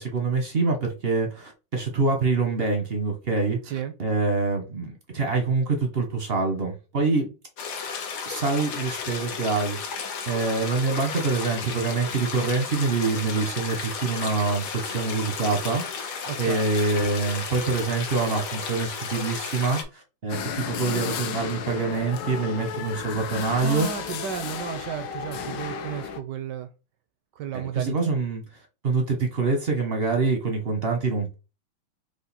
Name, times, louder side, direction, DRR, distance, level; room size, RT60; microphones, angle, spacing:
voice 1, 0.0-7.3 8.3-15.8 16.4-23.9 27.5-28.4 28.8-31.3, right 4 dB, 50° right, 0.7 m, -25 dB
sound 1, 7.6-19.8, left 6 dB, 90° left, 1.9 m, -33 dB
voice 2, 16.3-16.6 23.6-26.7 27.4-27.9, right 9 dB, 75° right, 1.0 m, -33 dB
sound 2, 20.3-26.2, left 7 dB, 70° left, 1.2 m, -33 dB
5.0 x 2.5 x 4.1 m
omnidirectional pair, 2.3 m